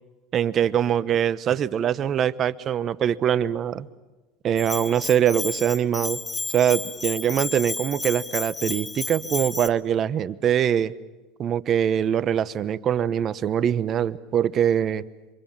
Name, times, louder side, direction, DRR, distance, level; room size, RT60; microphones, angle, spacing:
voice 1, 0.3-3.9 4.4-6.2 6.5-10.9 11.4-15.0, right 9 dB, 45° right, 18 dB, 1.0 m, -23 dB
Bell, 4.6-9.7, left 3 dB, 15° left, 1.4 m, -32 dB
27.5 x 24.5 x 7.4 m, 1.2 s
hypercardioid pair, 90°, 0 cm